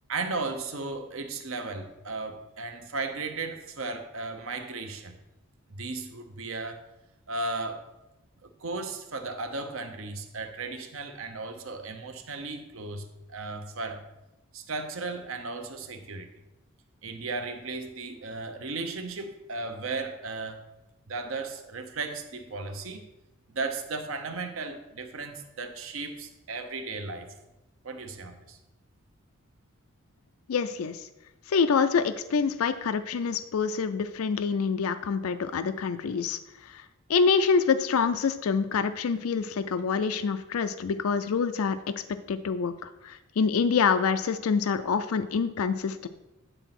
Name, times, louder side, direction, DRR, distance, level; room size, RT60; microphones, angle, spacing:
voice 1, 0.1-5.2 5.7-6.8 7.3-7.8 8.4-14.0 14.5-16.3 17.0-20.6 21.1-23.0 23.5-27.3 27.8-28.6, right 3 dB, 70° right, 7 dB, 0.9 m, -35 dB
voice 2, 30.5-31.0 31.5-36.4 37.1-41.8 42.3-46.1, left 5 dB, 85° left, 12 dB, 0.4 m, -26 dB
9.1 x 4.0 x 5.9 m, 0.98 s
head